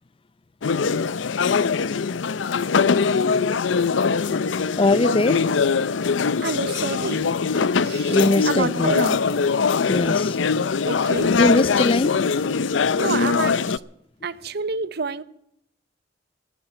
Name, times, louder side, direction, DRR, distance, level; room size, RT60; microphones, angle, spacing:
sound 1, 0.6-13.8, left 5 dB, 75° left, 0.6 m, -22 dB
voice 1, 4.8-5.5 5.8-5.9 8.1-9.0 9.9-10.4 11.3-12.2 12.8-12.9, left 2 dB, 30° left, 0.5 m, -21 dB
voice 2, 6.4-7.2 7.5-8.2 8.5-9.2 10.9-11.4 13.0-13.6 14.2-15.2, right 4 dB, 60° right, 0.8 m, -28 dB
15.0 x 10.0 x 8.7 m
head